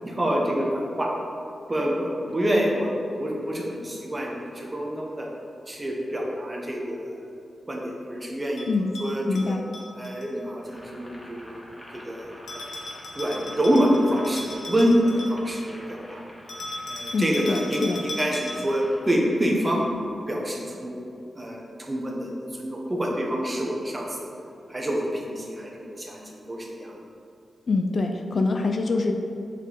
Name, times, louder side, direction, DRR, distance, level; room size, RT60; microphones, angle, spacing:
voice 1, 0.0-1.1 1.7-5.3 5.7-7.1 7.7-9.3 10.0-11.6 11.9-12.6 13.1-16.2 16.9-19.9 20.3-21.0 21.4-24.3 24.7-26.2 26.5-26.9, equal, 20° right, -2 dB, 0.8 m, -26 dB
Bell, 8.6-10.3 12.5-15.7 16.5-18.9, left 1 dB, 80° left, 1.0 m, -37 dB
voice 2, 9.3-9.6 17.1-18.0 26.2-26.4 27.7-29.1, left 3 dB, 45° left, 4 dB, 0.3 m, -25 dB
Boiling, 10.6-20.0, equal, 10° left, 0.9 m, -47 dB
5.2 x 4.2 x 4.9 m, 2.6 s
wide cardioid pair, 160°, 0 cm